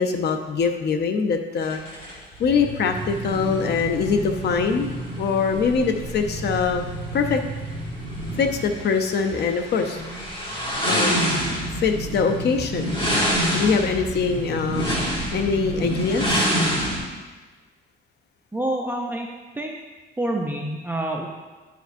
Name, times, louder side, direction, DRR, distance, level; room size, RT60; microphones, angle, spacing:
voice 1, 0.0-1.8 2.4-4.9 5.2-6.8 7.1-7.4 8.4-10.0 10.9-11.3 11.8-13.0 13.5-14.9 15.3-16.5, left 5 dB, 55° left, 6 dB, 0.6 m, -23 dB
sound 1, 1.6-17.0, equal, 25° left, 2.1 m, -27 dB
voice 2, 18.5-19.3 19.5-19.7 20.2-21.3, right 1 dB, 10° right, -1 dB, 0.6 m, -27 dB
10.0 x 5.0 x 2.6 m, 1.3 s
cardioid pair, 90°, 20 cm